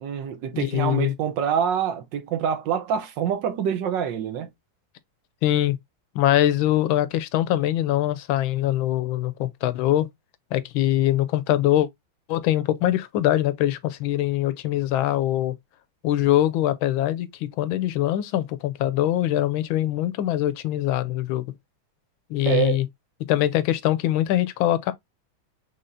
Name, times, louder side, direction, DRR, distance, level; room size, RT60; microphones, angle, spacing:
voice 1, 0.0-4.5 22.4-22.8, right 8 dB, 70° right, 1.4 m, -26 dB
voice 2, 0.5-1.1 5.4-5.8 6.1-10.1 10.5-11.9 12.3-15.5 16.0-21.4 22.3-22.9 23.3-24.9, left 13 dB, 85° left, 1.4 m, -23 dB
5.6 x 3.5 x 2.5 m
omnidirectional pair, 2.2 m